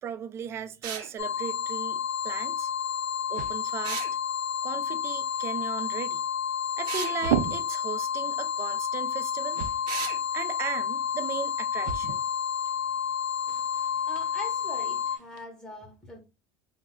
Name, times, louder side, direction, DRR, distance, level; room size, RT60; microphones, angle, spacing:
voice 1, 0.0-2.7 3.3-4.1 4.6-6.2 6.8-9.6 10.3-12.2, right 8 dB, 25° right, 0.3 m, -37 dB
sound 1, 0.8-1.1 3.8-4.1 6.9-7.2 9.9-10.2, right 7 dB, 55° right, 0.8 m, -34 dB
sound 2, 1.2-15.2, left 8 dB, 90° left, 0.5 m, -30 dB
sound 3, 2.0-15.4, right 9 dB, 90° right, 0.5 m, -39 dB
voice 2, 14.1-16.2, left 1 dB, 5° left, 0.7 m, -42 dB
3.3 x 2.1 x 3.6 m
cardioid pair, 160°, 10 cm